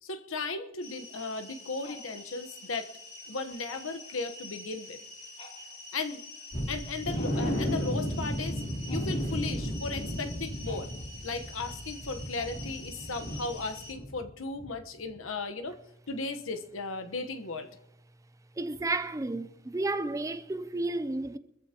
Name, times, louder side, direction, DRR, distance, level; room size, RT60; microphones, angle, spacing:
voice 1, 0.0-2.9 3.3-5.0 5.9-6.2 6.7-8.6 8.9-10.9 11.2-15.8 16.1-17.7, left 3 dB, 80° left, 1.1 m, -36 dB
sound 1, 0.8-13.9, left 2 dB, 30° left, 2.7 m, -47 dB
sound 2, 6.5-14.3 14.5-14.7 15.1-15.2, equal, 45° left, 3.1 m, -34 dB
voice 2, 18.6-21.4, right 2 dB, 15° right, 0.5 m, -32 dB
24.5 x 14.5 x 2.9 m
head